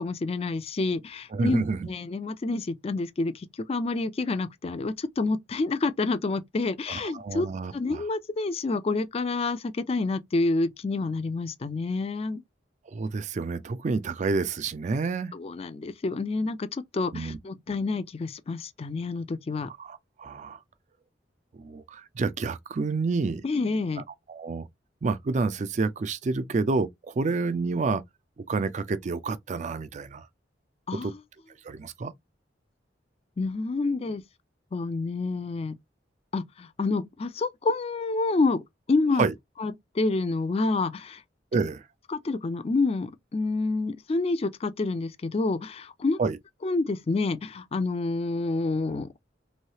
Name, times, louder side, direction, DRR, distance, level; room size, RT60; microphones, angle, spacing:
voice 1, 0.0-7.5 7.7-12.4 15.3-19.7 23.4-24.0 30.9-31.1 33.4-34.2 34.7-35.8 36.3-39.3 39.6-41.2 42.1-46.2 46.6-49.1, left 3 dB, 35° left, 0.4 m, -28 dB
voice 2, 1.3-1.9 6.9-8.0 12.9-15.3 17.1-17.4 19.8-20.6 21.6-23.4 24.3-24.7 25.0-28.0 28.5-30.3 31.0-31.1 31.6-32.1 39.2-39.3 41.5-41.8 46.2-46.4, right 4 dB, 40° right, 0.4 m, -29 dB
3.1 x 2.7 x 2.7 m
head